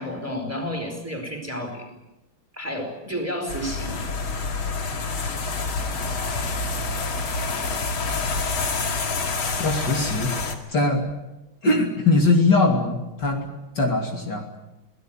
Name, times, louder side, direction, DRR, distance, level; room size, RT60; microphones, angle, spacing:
voice 1, 0.0-1.9 2.5-4.1, equal, 5° right, 3 dB, 4.4 m, -31 dB
sound 1, 3.5-10.5, left 3 dB, 70° left, 3.0 m, -27 dB
voice 2, 9.6-10.3 10.7-11.1 11.6-14.4, left 3 dB, 50° left, 1 dB, 3.5 m, -21 dB
25.5 x 17.5 x 9.1 m, 0.99 s
omnidirectional pair, 2.3 m